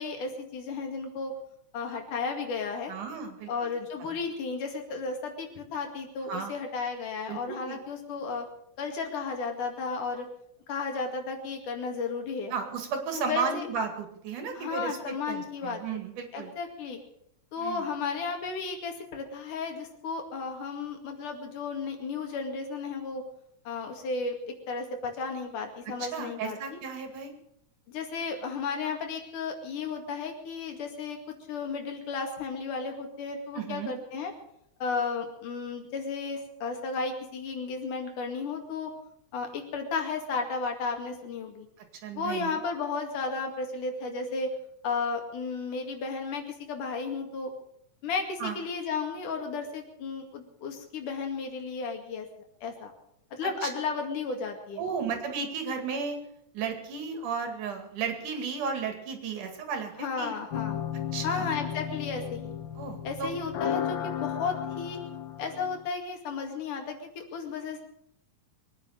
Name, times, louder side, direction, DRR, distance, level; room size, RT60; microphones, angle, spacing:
voice 1, 0.0-1.3 1.7-2.9 3.5-8.5 8.8-10.3 10.7-12.5 13.1-13.7 14.6-15.8 16.3-17.0 17.5-23.2 23.7-26.8 27.9-31.2 31.5-34.3 34.8-38.9 39.3-41.7 42.1-44.5 44.8-47.5 48.0-52.3 52.6-52.9 53.3-54.8 60.0-60.8 61.2-62.5 63.0-65.0 65.4-67.8, left 4 dB, 85° left, 3 dB, 3.9 m, -33 dB
voice 2, 2.9-3.5 4.0-4.1 6.3-6.6 7.3-7.8 12.5-16.5 17.6-17.9 26.0-27.3 33.5-33.9 42.0-42.6 48.4-48.6 53.4-53.7 54.8-56.2 56.5-60.3 61.1-61.6 62.8-63.4, right 5 dB, 85° right, 5 dB, 3.8 m, -34 dB
sound 1, 60.5-65.9, left 9 dB, 60° left, 1.3 m, -34 dB
23.0 x 9.8 x 6.5 m, 0.75 s
omnidirectional pair, 3.5 m